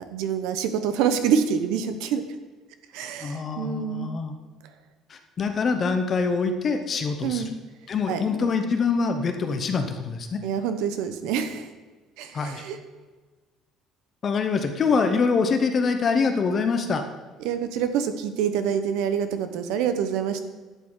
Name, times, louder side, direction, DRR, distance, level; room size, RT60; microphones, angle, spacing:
voice 1, 0.0-2.2 2.9-4.1 7.2-7.5 8.1-8.5 10.4-11.7 12.2-12.8 17.4-20.4, right 8 dB, 80° right, 9 dB, 1.0 m, -26 dB
voice 2, 3.2-4.3 5.1-7.4 7.9-10.4 12.3-12.6 14.2-17.0, left 4 dB, 25° left, 7 dB, 0.7 m, -24 dB
12.0 x 8.3 x 3.9 m, 1.3 s
cardioid pair, 175°, 0 cm